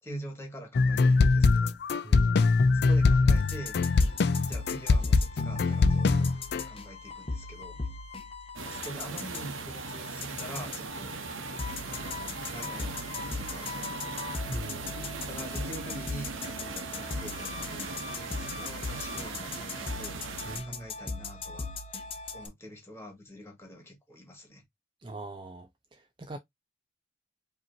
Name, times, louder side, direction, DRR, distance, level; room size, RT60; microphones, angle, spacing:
voice 1, 0.0-1.8 2.7-4.1 4.5-6.3 6.7-7.8 8.6-11.1 12.3-14.0 15.3-17.8 18.1-20.2 20.6-21.7 22.3-24.6, right 1 dB, 15° left, 1.7 m, -44 dB
sound 1, 0.8-6.6, left 4 dB, 55° left, 0.4 m, -22 dB
voice 2, 2.0-2.4 14.5-15.0 20.5-20.9 25.0-26.4, right 2 dB, 25° right, 0.4 m, -42 dB
sound 2, 3.4-22.5, left 4 dB, 30° left, 0.9 m, -39 dB
sound 3, 8.6-20.6, right 4 dB, 85° right, 0.9 m, -39 dB
5.1 x 2.9 x 2.6 m
head